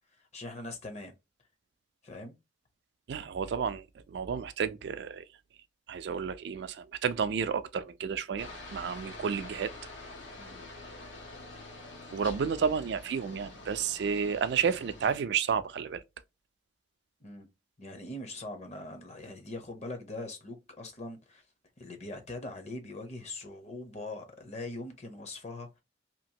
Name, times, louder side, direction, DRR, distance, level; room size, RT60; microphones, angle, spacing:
voice 1, 0.1-1.1 2.0-2.4 10.4-10.7 17.2-17.5 17.8-21.4 21.8-25.8, left 2 dB, 35° left, 0.7 m, -42 dB
voice 2, 3.1-5.2 5.9-9.7 12.1-16.0, right 6 dB, 60° right, 0.3 m, -31 dB
Aircraft, 8.4-15.2, left 2 dB, 80° left, 0.9 m, -47 dB
2.9 x 2.5 x 2.8 m
head